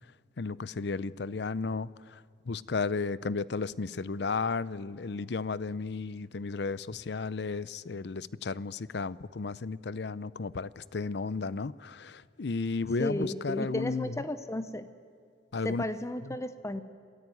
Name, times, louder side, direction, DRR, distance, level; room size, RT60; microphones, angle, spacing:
voice 1, 0.4-14.2 15.5-15.8, left 4 dB, 65° left, 19 dB, 0.6 m, -34 dB
voice 2, 13.0-14.9 15.6-16.8, left 1 dB, 15° left, 11 dB, 0.7 m, -33 dB
26.5 x 15.5 x 9.4 m, 2.3 s
head